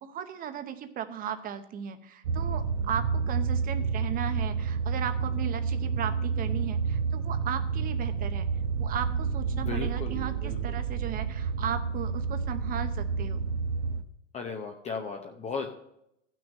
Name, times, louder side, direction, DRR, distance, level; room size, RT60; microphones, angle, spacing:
voice 1, 0.0-8.4 8.8-13.4, right 9 dB, 25° right, 10 dB, 0.8 m, -36 dB
sound 1, 2.2-14.0, right 5 dB, 65° right, 1.0 m, -30 dB
voice 2, 9.5-10.8 14.3-15.7, left 5 dB, 20° left, 4 dB, 0.7 m, -36 dB
14.5 x 6.2 x 5.3 m, 0.79 s
supercardioid pair, 140°, 37 cm